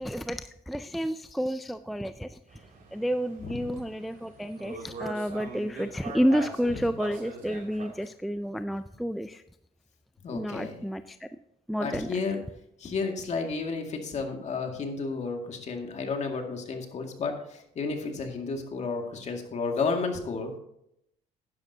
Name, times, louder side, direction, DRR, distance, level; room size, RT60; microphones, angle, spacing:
voice 1, 0.0-2.4 2.9-9.4 10.3-11.3 11.7-12.1, equal, ahead, 11 dB, 0.3 m, -30 dB
sound 1, 2.5-8.1, right 4 dB, 50° right, 2.8 m, -42 dB
voice 2, 3.4-3.7 10.2-10.8 11.8-12.4 12.8-20.5, left 4 dB, 45° left, 3 dB, 2.1 m, -32 dB
11.5 x 10.5 x 2.8 m, 0.77 s
cardioid pair, 110°, 17 cm